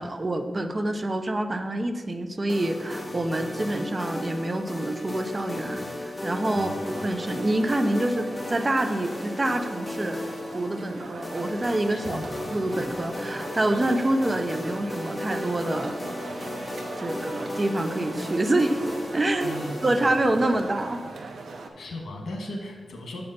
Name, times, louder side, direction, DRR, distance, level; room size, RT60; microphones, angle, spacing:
voice 1, 0.0-10.2 10.5-15.9 17.0-18.8 19.1-19.6 19.8-21.0, right 1 dB, 30° right, 7 dB, 0.6 m, -27 dB
sound 1, 2.5-21.1, left 1 dB, 20° left, 0.8 m, -35 dB
voice 2, 6.5-6.9 11.9-12.3 19.4-20.1 21.8-23.2, left 1 dB, 85° left, 1 dB, 1.4 m, -37 dB
sound 2, 6.7-21.7, right 3 dB, 75° right, 0.8 m, -41 dB
6.9 x 5.2 x 5.6 m, 1.4 s
wide cardioid pair, 105°, 0 cm